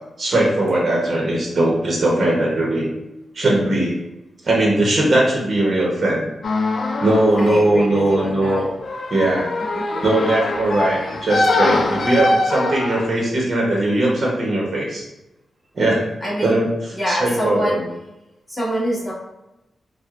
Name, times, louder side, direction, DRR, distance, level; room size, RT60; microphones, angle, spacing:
voice 1, 0.2-2.9 3.3-3.9 4.4-6.3 7.0-8.7 9.1-9.5 10.0-15.0 15.7-16.1 16.4-16.7 17.1-17.8, right 1 dB, 50° right, -2 dB, 0.8 m, -19 dB
sound 1, 6.4-13.1, left 2 dB, 55° left, 0.3 m, -23 dB
voice 2, 7.4-8.6 9.7-10.0 16.2-16.6 17.0-17.8 18.5-19.1, equal, 15° left, -7 dB, 1.4 m, -25 dB
4.4 x 2.1 x 2.4 m, 0.93 s
cardioid pair, 95°, 0 cm